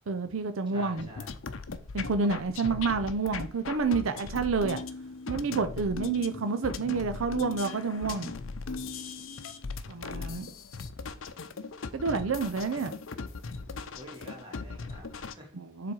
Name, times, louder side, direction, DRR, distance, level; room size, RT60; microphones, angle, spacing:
voice 1, 0.1-1.1 1.9-4.8 5.3-8.3 9.9-10.5 11.9-12.9 15.5-15.9, right 4 dB, 85° right, 0.6 m, -29 dB
voice 2, 0.7-1.3 9.8-10.4 12.8-12.9 13.9-15.5, equal, 25° right, 2.7 m, -47 dB
sound 1, 1.0-15.3, left 4 dB, 75° left, 0.7 m, -38 dB
7.5 x 4.0 x 4.6 m
head